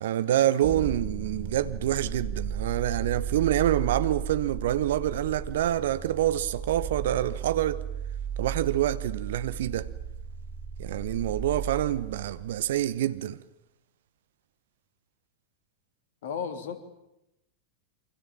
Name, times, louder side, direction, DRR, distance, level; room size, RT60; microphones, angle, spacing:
voice 1, 0.0-7.8 8.4-9.9 10.8-13.4, right 12 dB, 60° right, 1.0 m, -27 dB
sound 1, 0.6-12.7, right 7 dB, 35° right, 3.8 m, -35 dB
voice 2, 16.2-16.8, left 7 dB, 55° left, 3.3 m, -33 dB
28.5 x 25.0 x 7.3 m
figure-of-eight pair, 90°, 0 cm